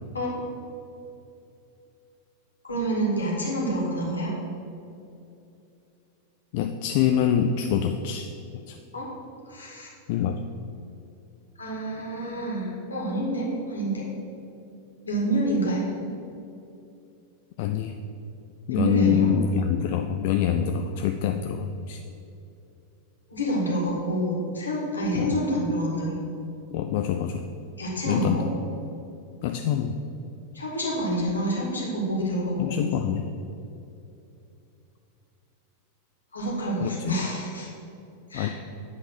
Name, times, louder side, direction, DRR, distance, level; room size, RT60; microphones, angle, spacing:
voice 1, 2.6-4.3 8.9-9.1 9.5-9.9 11.6-14.1 15.0-15.9 18.7-19.3 23.3-26.2 27.8-28.5 30.5-32.9 36.3-37.7 38.3-38.5, right 1 dB, 75° left, -4 dB, 1.9 m, -27 dB
voice 2, 6.5-8.3 8.7-8.8 10.1-10.4 17.6-18.0 18.7-22.0 25.1-25.4 26.7-27.4 28.1-28.5 29.4-30.0 32.6-33.3 36.8-37.2 38.3-38.5, left 9 dB, 50° left, 6 dB, 0.3 m, -25 dB
8.6 x 3.8 x 6.4 m, 2.7 s
figure-of-eight pair, 90°, 0 cm